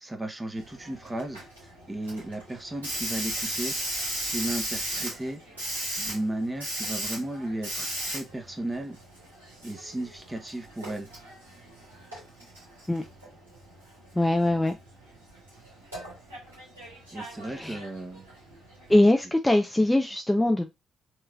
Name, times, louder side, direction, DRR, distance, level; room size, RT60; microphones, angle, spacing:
voice 1, 0.0-3.8 4.3-5.4 6.0-9.0 9.6-11.1 17.1-18.2, right 1 dB, 15° right, 1.1 m, -35 dB
Hiss, 0.6-19.0, right 1 dB, 85° right, 2.2 m, -37 dB
voice 2, 14.1-14.8 17.6-17.8 18.9-20.7, left 1 dB, 10° left, 0.6 m, -22 dB
4.6 x 3.1 x 2.4 m
figure-of-eight pair, 40°, 0 cm